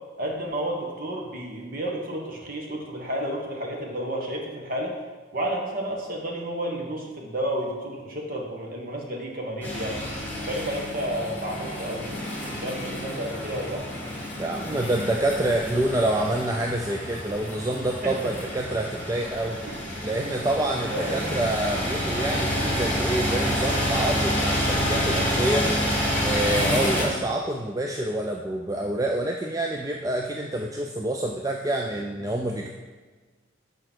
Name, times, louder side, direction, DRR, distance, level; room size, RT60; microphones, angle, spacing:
voice 1, 0.2-4.9 5.3-10.0 10.5-13.9 18.0-18.1 19.6-19.8 20.8-21.2, right 1 dB, 45° right, 0 dB, 1.4 m, -31 dB
sound 1, 9.6-27.0, equal, 10° left, 1.8 m, -28 dB
voice 2, 14.4-19.6 20.0-25.7 26.2-32.7, right 1 dB, 15° right, 1 dB, 0.3 m, -27 dB
6.5 x 5.1 x 6.1 m, 1.4 s
head